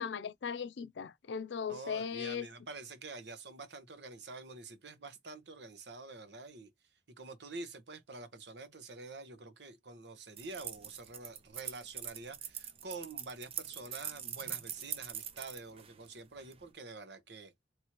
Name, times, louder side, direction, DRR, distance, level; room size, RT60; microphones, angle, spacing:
voice 1, 0.0-2.5, left 6 dB, 85° left, 0.4 m, -38 dB
voice 2, 1.7-6.7 7.2-17.5, right 3 dB, 75° right, 1.0 m, -47 dB
sound 1, 10.4-16.6, right 9 dB, 35° right, 0.6 m, -43 dB
4.4 x 3.2 x 3.0 m
head